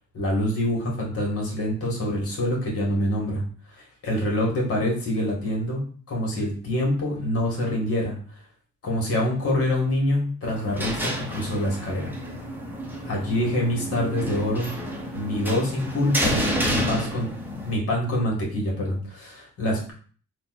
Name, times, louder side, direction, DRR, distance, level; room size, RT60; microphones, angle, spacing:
voice 1, 0.1-3.4 3.7-8.2 8.8-12.1 13.0-14.7 15.1-17.3 17.6-19.9, left 1 dB, 50° left, -1 dB, 2.1 m, -26 dB
sound 1, 10.4-17.8, equal, 5° right, 1.1 m, -29 dB
3.9 x 2.5 x 4.3 m, 0.43 s
cardioid pair, 90°, 30 cm